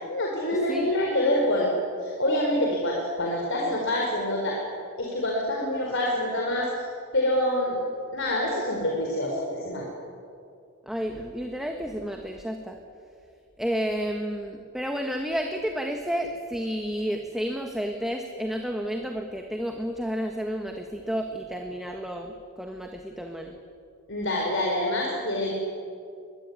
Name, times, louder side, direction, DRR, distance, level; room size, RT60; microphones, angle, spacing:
voice 1, 0.1-1.7 2.0-4.6 5.0-6.7 7.1-7.8 8.1-9.8 24.1-25.5, left 1 dB, 55° left, -1 dB, 4.6 m, -26 dB
voice 2, 10.8-12.8 13.6-23.5, equal, ahead, 3 dB, 1.5 m, -31 dB
24.0 x 21.5 x 9.7 m, 2.4 s
head